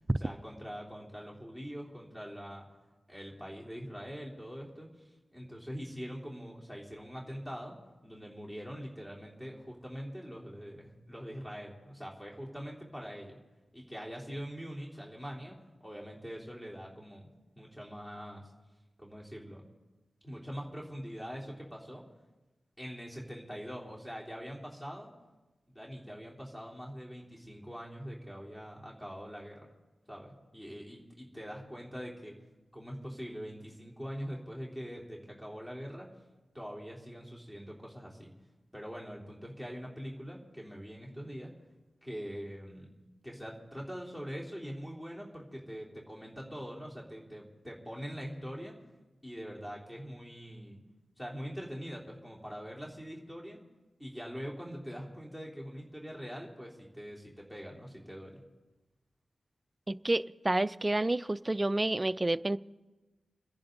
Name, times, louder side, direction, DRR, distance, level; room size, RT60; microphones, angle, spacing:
voice 1, 0.2-2.7 3.1-7.7 8.0-13.4 13.7-15.6 15.8-17.3 17.6-18.5 19.0-19.6 20.2-22.0 22.8-25.1 25.7-29.7 30.1-32.3 32.7-36.1 36.5-38.3 38.7-41.5 42.0-42.9 43.2-48.7 49.2-50.8 51.2-53.6 54.0-58.4, equal, 15° left, 3.6 m, -43 dB
voice 2, 59.9-62.6, right 2 dB, 25° right, 0.5 m, -29 dB
29.5 x 10.5 x 3.9 m
cardioid pair, 65°, 0 cm